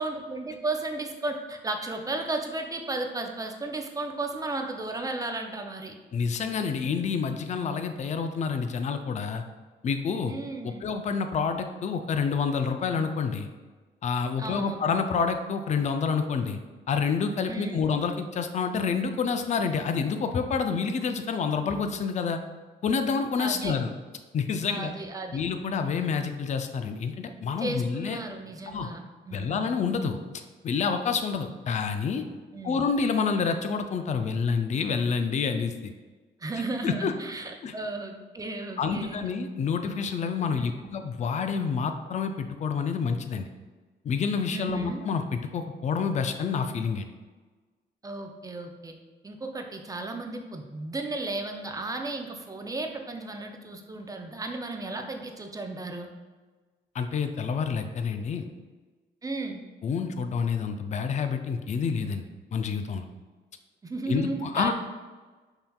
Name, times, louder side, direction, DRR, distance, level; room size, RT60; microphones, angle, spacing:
voice 1, 0.0-6.0 10.3-10.9 14.4-14.8 17.4-17.9 23.4-23.8 24.7-25.4 27.6-29.7 32.5-32.9 36.4-39.2 40.5-40.9 44.5-45.0 48.0-48.9 49.2-56.1 59.2-59.6 63.8-64.7, right 2 dB, 20° right, 4 dB, 0.5 m, -34 dB
voice 2, 6.1-9.4 9.8-10.3 10.6-13.5 14.0-16.6 16.9-22.4 22.8-23.9 24.3-24.9 25.3-28.2 28.7-28.9 29.3-32.2 32.6-35.9 36.8-37.1 37.6-37.7 38.8-43.5 44.0-47.1 56.9-58.5 59.8-62.2 62.5-63.0 64.1-64.7, left 5 dB, 35° left, 7 dB, 0.4 m, -28 dB
5.5 x 2.8 x 2.3 m, 1.3 s
cardioid pair, 90°, 20 cm